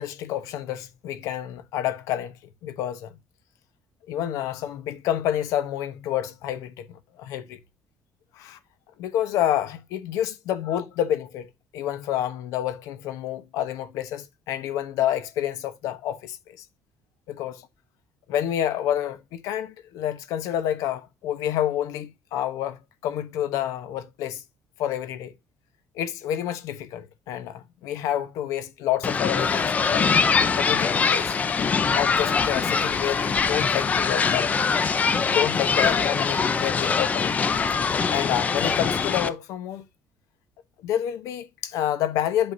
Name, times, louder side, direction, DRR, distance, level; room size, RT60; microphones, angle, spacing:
voice 1, 0.0-2.4 2.6-3.1 4.1-7.6 8.3-8.6 9.0-11.5 11.7-16.6 17.3-17.7 18.3-24.4 24.8-25.3 25.9-30.1 30.4-31.3 31.9-34.5 35.1-37.3 38.1-39.8 40.8-42.5, left 11 dB, 75° left, 1.0 m, -28 dB
sound 1, 29.0-39.3, left 5 dB, 25° left, 0.6 m, -23 dB
8.1 x 5.8 x 2.6 m
cardioid pair, 155°, 6 cm